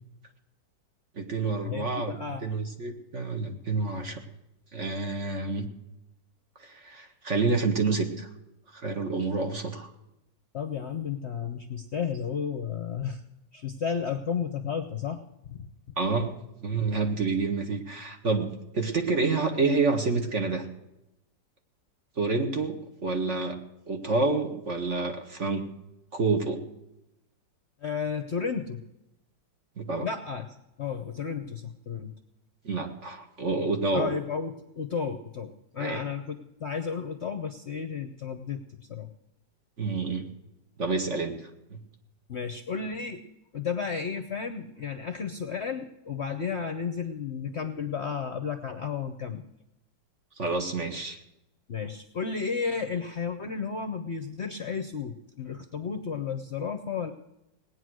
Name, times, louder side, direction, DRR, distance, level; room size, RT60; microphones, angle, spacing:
voice 1, 1.1-4.2 4.7-5.7 6.6-8.3 8.7-9.9 16.0-16.3 16.6-20.7 22.2-23.6 23.9-25.6 26.1-26.6 29.8-30.1 32.6-34.1 35.8-36.0 39.8-40.3 40.8-41.5 50.4-51.2, right 3 dB, 40° right, 4 dB, 1.8 m, -28 dB
voice 2, 1.7-2.4 10.5-13.2 13.5-15.2 15.5-15.7 27.8-28.8 30.0-30.5 30.8-32.1 33.9-38.6 38.9-39.1 42.3-43.2 43.5-49.4 51.7-57.1, left 6 dB, 45° left, 8 dB, 0.9 m, -33 dB
18.0 x 9.6 x 6.2 m, 0.89 s
omnidirectional pair, 1.9 m